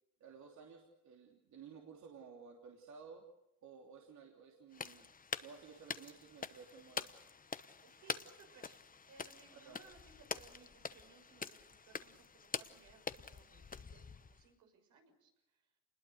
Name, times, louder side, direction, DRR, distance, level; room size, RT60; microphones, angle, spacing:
voice 1, 0.2-3.3 3.6-5.1 5.4-7.1 9.5-9.8, right 6 dB, 70° right, 1 dB, 3.2 m, -55 dB
sound 1, 4.7-14.5, left 5 dB, 30° left, 1.0 m, -46 dB
voice 2, 7.8-8.8 9.1-15.3, right 5 dB, 85° right, 4 dB, 6.2 m, -63 dB
27.5 x 21.0 x 6.6 m, 0.89 s
cardioid pair, 90°, 30 cm